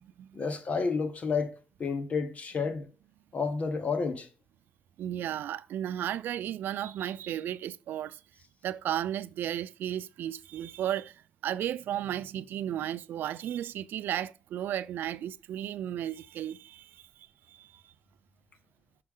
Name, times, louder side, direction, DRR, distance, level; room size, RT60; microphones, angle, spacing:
voice 1, 0.3-1.5 1.8-2.9 3.3-4.3, left 5 dB, 45° left, 1.1 m, -30 dB
voice 2, 5.0-8.2 8.6-17.9, right 11 dB, 80° right, 0.3 m, -34 dB
6.6 x 6.1 x 3.7 m
cardioid pair, 95°, 3 cm